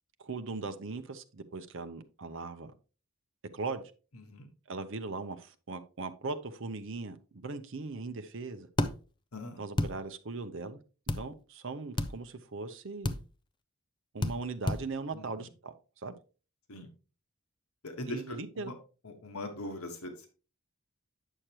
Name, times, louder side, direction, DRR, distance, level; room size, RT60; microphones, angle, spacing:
voice 1, 0.2-2.7 3.5-3.8 4.7-8.7 9.6-10.8 11.2-13.1 14.1-15.7 16.0-16.1 18.1-18.7, right 3 dB, 60° right, 0.7 m, -39 dB
voice 2, 4.1-4.5 9.3-9.6 15.1-15.5 16.7-16.9 17.8-18.7 19.0-20.3, left 1 dB, 85° left, 1.4 m, -41 dB
sound 1, 8.8-8.9 9.8-9.9 11.1-11.2 12.0-12.1 13.0-13.2 14.2-14.4 14.7-14.8, left 2 dB, 20° left, 0.4 m, -29 dB
8.9 x 6.4 x 2.9 m
head